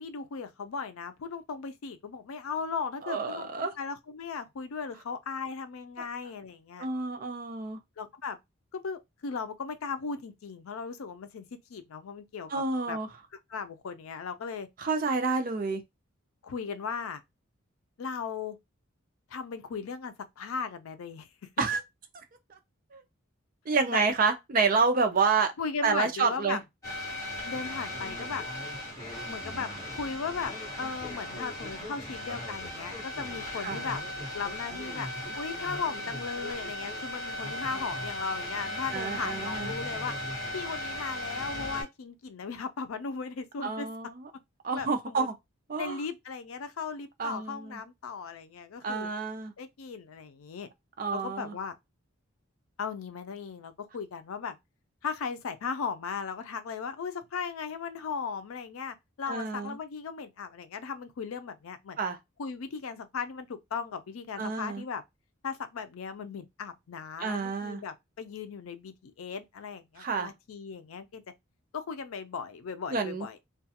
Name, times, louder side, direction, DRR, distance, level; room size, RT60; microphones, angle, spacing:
voice 1, 0.0-6.9 8.0-8.4 8.7-12.5 12.9-13.0 13.5-14.7 16.4-17.2 18.0-18.6 19.3-21.3 23.9-24.0 25.6-26.6 27.5-28.4 29.3-34.0 34.3-35.1 35.4-40.2 40.5-43.9 44.7-45.3 45.8-49.1 49.6-50.7 51.1-51.8 52.8-54.6 55.0-62.0 62.4-65.0 65.4-71.2 71.7-73.4, left 5 dB, 85° left, 0.4 m, -37 dB
voice 2, 3.0-3.7 6.0-6.1 6.8-7.8 12.5-13.1 14.8-15.8 21.6-21.8 22.9-23.0 23.7-25.5 25.8-26.6 33.5-33.8 38.9-39.7 43.6-44.2 44.6-45.3 45.7-46.0 47.2-47.8 48.8-49.5 51.0-51.5 59.3-59.8 62.0-62.2 64.4-64.8 67.2-67.8 70.0-70.3 72.9-73.3, right 4 dB, 40° right, 0.4 m, -29 dB
sound 1, 26.8-41.8, left 1 dB, 15° left, 1.2 m, -37 dB
2.4 x 2.2 x 2.7 m
head